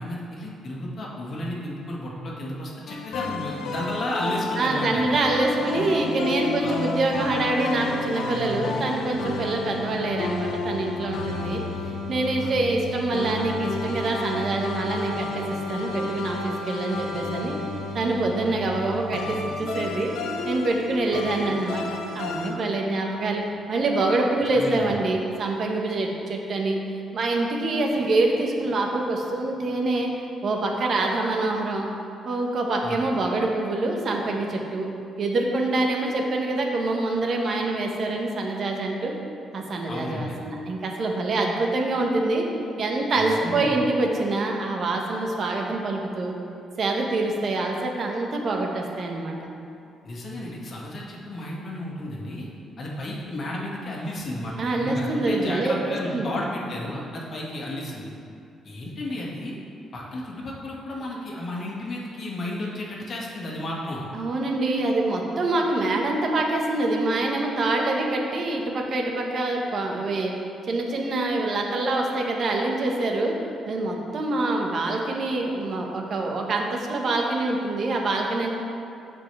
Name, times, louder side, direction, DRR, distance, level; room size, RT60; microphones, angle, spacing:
voice 1, 0.0-5.0 6.6-6.8 12.4-12.6 24.5-25.0 32.8-33.0 39.9-40.4 43.2-43.8 50.0-52.5 52.8-58.1 58.6-59.6 59.9-64.0, left 1 dB, 50° left, -4 dB, 1.9 m, -33 dB
sound 1, 2.9-22.5, left 3 dB, 85° left, 1.0 m, -31 dB
voice 2, 4.6-11.6 12.1-17.5 17.9-20.1 20.4-26.8 27.1-30.1 30.4-31.9 32.2-34.9 35.2-39.1 39.5-42.5 42.8-46.3 46.8-49.4 54.6-56.3 64.1-70.3 70.6-73.4 73.7-78.5, right 2 dB, 55° right, 1 dB, 1.3 m, -25 dB
14.5 x 5.1 x 3.4 m, 2.5 s
cardioid pair, 90°, 0 cm